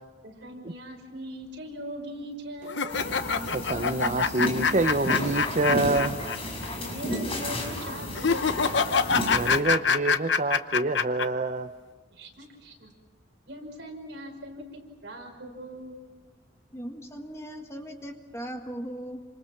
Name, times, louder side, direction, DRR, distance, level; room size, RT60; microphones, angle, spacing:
voice 1, 0.2-2.9 6.7-9.0 12.1-12.9 13.5-16.0, right 1 dB, 60° right, 1 dB, 5.6 m, -40 dB
sound 1, 2.7-6.4 6.6-6.7 8.2-11.3, left 5 dB, 65° left, 0.9 m, -25 dB
sound 2, 2.9-9.6, left 1 dB, 30° left, 5.3 m, -33 dB
voice 2, 3.5-6.3 9.3-11.7, right 2 dB, 40° right, 8 dB, 0.8 m, -27 dB
voice 3, 16.7-19.2, equal, 15° left, 4 dB, 1.7 m, -38 dB
28.5 x 26.5 x 5.9 m, 1.4 s
head